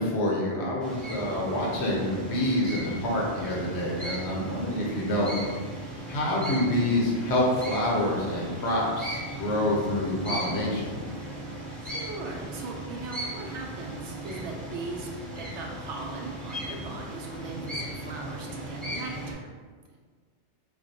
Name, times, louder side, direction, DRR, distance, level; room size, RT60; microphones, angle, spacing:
voice 1, 0.0-5.3 6.1-11.0, left 1 dB, 70° left, -3 dB, 1.1 m, -27 dB
sound 1, 0.8-19.3, right 1 dB, ahead, 0.6 m, -37 dB
voice 2, 11.8-15.1 15.3-19.4, right 3 dB, 80° right, 0 dB, 0.9 m, -39 dB
4.4 x 2.2 x 2.7 m, 1.5 s
omnidirectional pair, 1.2 m